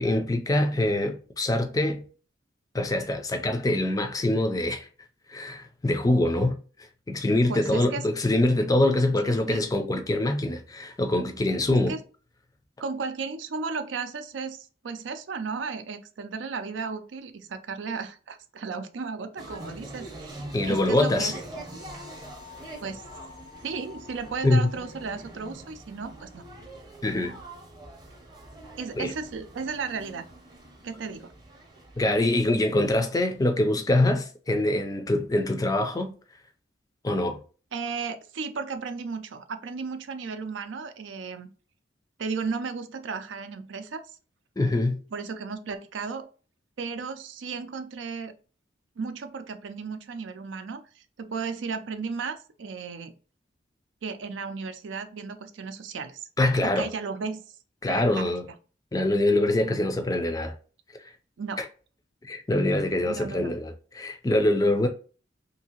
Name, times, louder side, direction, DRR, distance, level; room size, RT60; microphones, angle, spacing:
voice 1, 0.0-2.0 2.7-4.9 5.3-6.6 7.1-12.0 20.5-21.3 24.4-24.7 27.0-27.4 29.0-29.1 32.0-36.1 37.0-37.4 44.6-45.0 56.4-56.9 57.8-58.5 58.9-60.5 62.2-64.9, left 1 dB, 20° left, 0.4 m, -24 dB
voice 2, 7.5-8.0 9.2-9.7 11.9-12.0 12.8-21.3 22.8-23.0 23.6-26.4 28.8-30.3 30.8-31.3 37.7-41.5 42.2-44.0 45.1-46.3 46.8-48.3 49.0-53.1 54.0-56.3 56.6-57.4 57.9-58.3 61.4-61.6 63.0-63.5, right 5 dB, 75° right, 0.4 m, -34 dB
sound 1, 19.4-33.4, right 1 dB, 20° right, 0.7 m, -44 dB
2.7 x 2.7 x 2.8 m
head